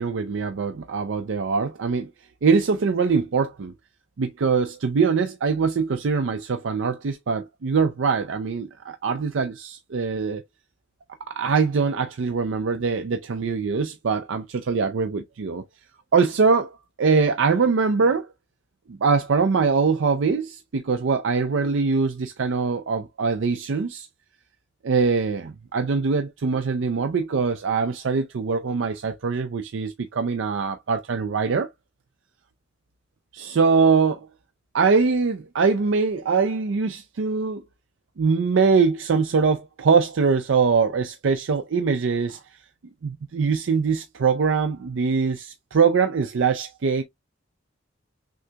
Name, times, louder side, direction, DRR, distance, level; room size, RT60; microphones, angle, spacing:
voice 1, 0.0-2.1 2.4-3.7 4.2-10.4 11.3-15.6 16.1-18.3 19.0-24.1 24.8-31.7 33.3-34.3 34.7-37.6 38.2-42.4 43.0-47.0, right 5 dB, 80° right, 0.5 m, -23 dB
6.2 x 2.8 x 2.2 m
head